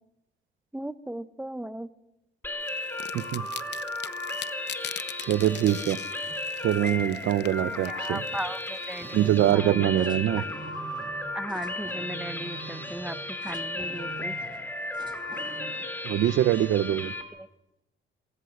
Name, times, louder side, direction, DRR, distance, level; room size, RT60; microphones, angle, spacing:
voice 1, 0.7-1.9 7.6-10.1 10.4-10.5 11.3-14.4 17.3-17.5, right 1 dB, 5° right, 13 dB, 1.0 m, -37 dB
sound 1, 2.4-17.2, left 2 dB, 10° left, 3.2 m, -35 dB
sound 2, 2.7-9.5, left 10 dB, 60° left, 0.8 m, -42 dB
voice 2, 3.1-3.5 5.3-6.0 6.6-8.2 9.1-10.4 16.0-17.1, right 12 dB, 80° right, 16 dB, 0.9 m, -24 dB
sound 3, 5.5-16.1, right 4 dB, 20° right, 2.1 m, -47 dB
27.0 x 18.0 x 6.6 m, 0.92 s
cardioid pair, 90°, 20 cm